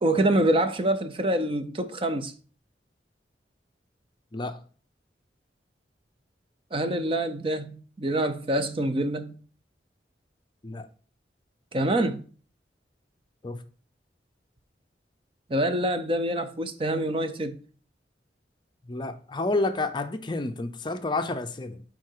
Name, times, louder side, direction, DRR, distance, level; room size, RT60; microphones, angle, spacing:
voice 1, 0.0-2.3 6.7-9.3 11.7-12.3 15.5-17.6, right 1 dB, 30° right, 0.6 m, -26 dB
voice 2, 4.3-4.6 10.6-10.9 13.4-13.6 18.9-21.8, left 2 dB, 25° left, 0.5 m, -30 dB
9.5 x 3.9 x 4.5 m
head